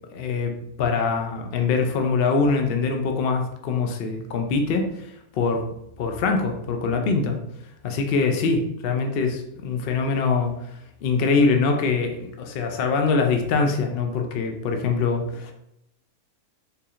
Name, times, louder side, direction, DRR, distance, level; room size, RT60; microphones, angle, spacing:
voice 1, 0.1-0.5 0.8-5.6 6.0-7.4 7.8-10.5 11.0-15.5, left 4 dB, 65° left, 4 dB, 0.5 m, -23 dB
4.6 x 3.4 x 2.4 m, 0.80 s
omnidirectional pair, 1.5 m